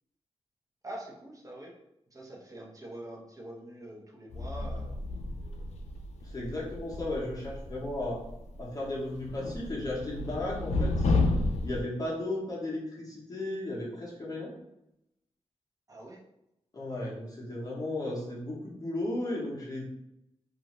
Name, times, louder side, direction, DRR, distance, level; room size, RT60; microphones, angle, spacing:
voice 1, 0.8-1.7 2.1-4.9 15.9-16.2, right 1 dB, 30° right, -2 dB, 0.8 m, -44 dB
sound 1, 4.3-8.6 8.8-11.8, left 2 dB, 85° left, 0.4 m, -31 dB
voice 2, 6.2-8.2 8.6-11.1 11.6-14.5 16.7-19.9, left 1 dB, 35° left, -6 dB, 0.8 m, -35 dB
2.5 x 2.4 x 3.0 m, 0.85 s
wide cardioid pair, 100°, 11 cm